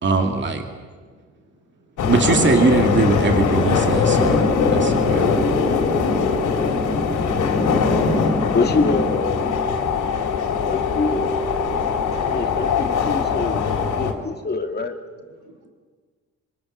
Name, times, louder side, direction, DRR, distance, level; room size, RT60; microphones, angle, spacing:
voice 1, 0.0-0.6 2.1-4.4 4.7-5.3, right 4 dB, 40° right, 4 dB, 2.5 m, -20 dB
voice 2, 0.8-2.0 11.5-11.6 13.6-13.7 15.4-15.7, right 1 dB, 75° right, 4 dB, 5.3 m, -55 dB
sound 1, 2.0-14.1, left 5 dB, 75° left, 3.4 m, -21 dB
voice 3, 8.2-9.7 10.7-11.3 12.2-13.6 13.9-15.0, left 3 dB, 35° left, 5 dB, 2.2 m, -25 dB
25.5 x 24.0 x 6.6 m, 1.5 s
cardioid pair, 90°, 30 cm